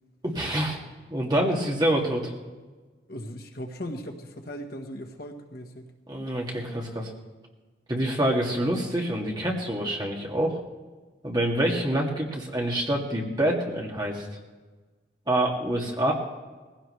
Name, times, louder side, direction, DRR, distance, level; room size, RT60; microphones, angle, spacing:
voice 1, 0.2-0.8 1.1-2.3 6.1-7.1 7.9-10.6 11.2-14.3 15.3-16.1, right 1 dB, 20° right, -2 dB, 2.2 m, -26 dB
voice 2, 3.1-5.9 16.0-16.1, equal, 50° left, 4 dB, 1.3 m, -38 dB
19.0 x 16.5 x 3.3 m, 1.3 s
head